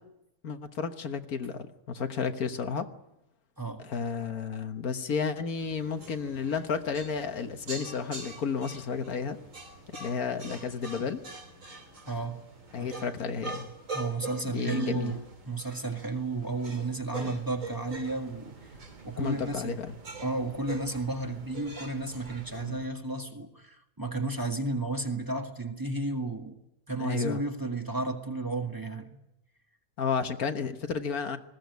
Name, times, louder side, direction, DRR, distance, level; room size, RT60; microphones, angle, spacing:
voice 1, 0.4-2.9 3.8-9.4 9.9-11.2 12.7-13.7 14.4-15.2 17.2-17.4 19.2-19.9 22.6-22.8 27.0-27.4 30.0-31.4, left 5 dB, 80° left, 1.8 m, -32 dB
voice 2, 3.6-3.9 12.1-12.4 12.8-13.0 13.9-18.8 19.0-19.8 20.2-26.6 26.9-29.2, right 2 dB, 15° right, 1.8 m, -33 dB
sound 1, 5.6-22.8, right 2 dB, 60° right, 3.6 m, -44 dB
sound 2, 17.2-22.9, right 4 dB, 35° right, 1.0 m, -52 dB
20.5 x 16.5 x 9.4 m
omnidirectional pair, 1.5 m